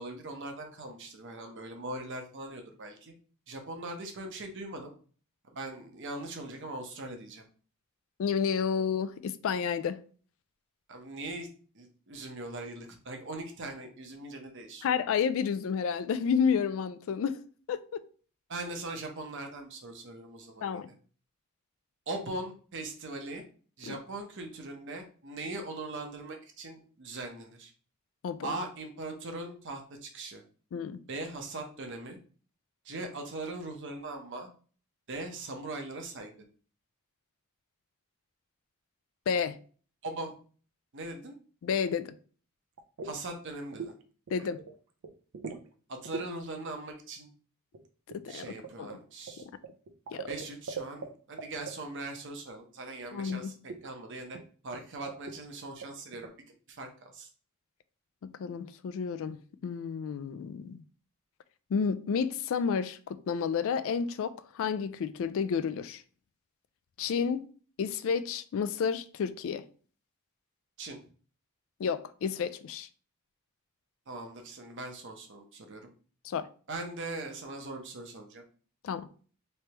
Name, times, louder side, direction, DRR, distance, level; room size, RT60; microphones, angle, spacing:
voice 1, 0.0-3.1 3.5-4.9 5.5-7.4 10.9-11.5 11.7-14.8 18.5-20.8 22.1-23.4 23.8-27.7 28.4-30.4 31.1-32.2 32.8-34.5 35.1-36.3 40.0-40.3 40.9-41.4 43.0-43.9 44.3-44.5 45.9-47.3 48.3-49.4 50.1-54.4 54.6-56.3 56.7-57.3 70.8-71.0 74.1-75.9 76.7-78.4, right 2 dB, 55° right, 0.8 m, -40 dB
voice 2, 8.2-10.0 14.8-17.4 17.7-18.0 20.6-20.9 23.9-24.0 28.2-28.5 30.7-31.0 39.3-39.6 41.6-42.1 44.3-44.6 48.2-48.9 50.1-50.3 53.1-53.5 58.4-60.8 61.7-66.0 67.0-67.5 67.8-69.6 71.8-72.9 76.2-76.5 78.8-79.1, left 6 dB, 60° left, 0.3 m, -31 dB
sound 1, 42.8-43.2 43.5-44.0 44.3-44.7 45.0-45.7 46.1-46.3 47.7-51.1 51.4-51.7 53.3-53.4 53.7-53.9 54.3-54.4 54.7-54.8 55.1-55.4 55.8-56.3, right 5 dB, 85° right, 0.5 m, -40 dB
3.3 x 3.2 x 2.9 m
head